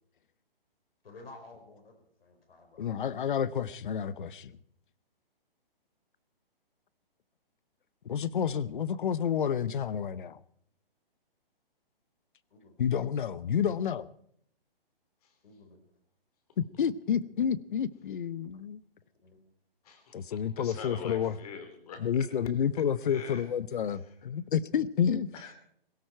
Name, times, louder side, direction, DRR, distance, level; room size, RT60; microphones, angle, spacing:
voice 1, 1.0-3.1 12.5-12.8 15.4-15.8 19.2-19.4, left 2 dB, 75° left, 4.8 m, -52 dB
voice 2, 2.8-4.5 8.0-10.4 12.8-14.1 16.6-18.8 20.1-21.3 22.0-25.3, left 8 dB, 60° left, 0.8 m, -30 dB
voice 3, 19.8-22.2 23.0-23.4 23.8-24.2 25.3-25.5, left 5 dB, 40° left, 3.4 m, -45 dB
18.5 x 17.0 x 4.5 m
hypercardioid pair, 160°, 29 cm